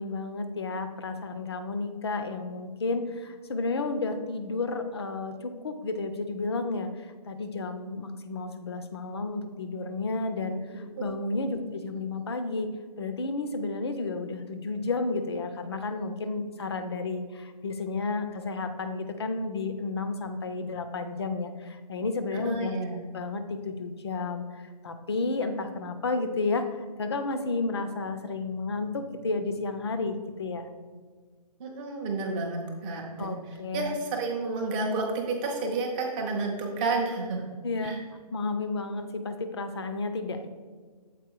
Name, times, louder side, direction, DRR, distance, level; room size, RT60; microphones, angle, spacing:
voice 1, 0.0-6.9 7.3-10.6 11.0-12.7 13.0-22.8 23.1-24.4 24.8-26.7 27.0-30.7 33.2-33.9 37.6-38.0 38.3-40.5, left 3 dB, 40° left, 8 dB, 0.6 m, -32 dB
voice 2, 22.3-23.0 31.6-37.4 37.8-38.0, right 3 dB, 15° right, 0 dB, 0.7 m, -31 dB
7.5 x 4.5 x 4.5 m, 1.5 s
figure-of-eight pair, 150°, 21 cm